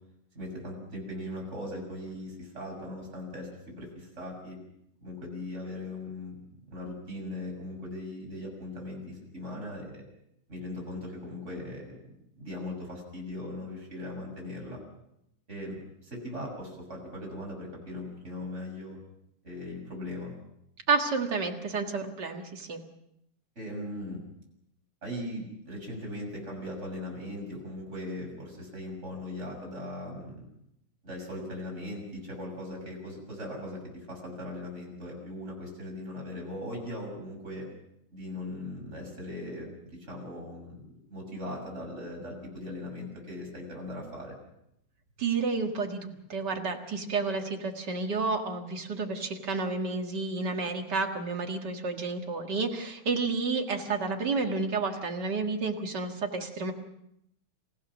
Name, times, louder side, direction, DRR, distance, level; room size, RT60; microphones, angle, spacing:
voice 1, 0.3-3.5 3.8-4.6 5.0-6.4 6.7-10.0 10.5-12.0 12.4-14.8 15.5-19.0 19.4-20.3 23.6-24.2 25.0-30.4 31.0-33.8 34.1-37.7 38.1-44.3, left 1 dB, 20° right, -1 dB, 7.0 m, -39 dB
voice 2, 20.9-22.8 45.2-56.7, right 4 dB, 40° right, 3 dB, 2.0 m, -30 dB
28.5 x 15.5 x 6.3 m, 0.78 s
omnidirectional pair, 3.4 m